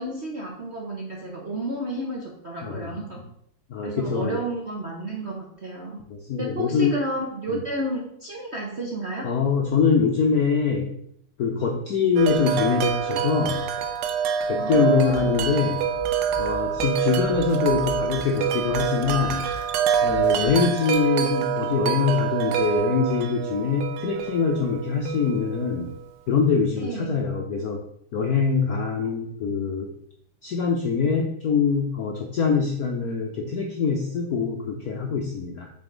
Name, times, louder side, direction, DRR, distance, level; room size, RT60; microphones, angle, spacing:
voice 1, 0.0-3.2 3.8-6.0 6.4-9.3 14.6-15.4 20.3-20.7 26.8-27.3, right 1 dB, 50° right, -2 dB, 0.8 m, -32 dB
voice 2, 2.6-3.2 3.7-4.4 6.1-7.0 7.5-7.6 9.2-10.9 11.4-13.7 14.5-15.9 16.4-19.5 20.0-25.9 26.3-27.8 28.1-29.9 30.4-35.7, left 5 dB, 70° left, 1 dB, 0.9 m, -24 dB
Wind chime, 12.2-26.1, right 8 dB, 80° right, 1.5 m, -26 dB
Snare drum, 15.1-20.6, left 4 dB, 5° right, 1.1 m, -40 dB
7.7 x 4.1 x 3.8 m, 0.69 s
omnidirectional pair, 2.4 m